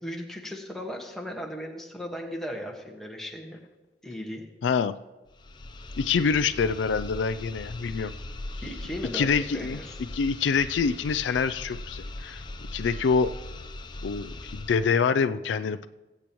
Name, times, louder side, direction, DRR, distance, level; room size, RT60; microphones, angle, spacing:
voice 1, 0.0-3.6 4.0-4.4 8.6-10.0, equal, ahead, -1 dB, 1.5 m, -37 dB
voice 2, 4.6-4.9 6.0-8.1 9.1-9.8 10.1-12.4 12.7-13.3 14.0-15.9, left 5 dB, 80° left, 12 dB, 0.4 m, -26 dB
sound 1, 5.3-14.9, left 2 dB, 25° left, 0.6 m, -40 dB
20.5 x 8.4 x 3.0 m, 1.1 s
head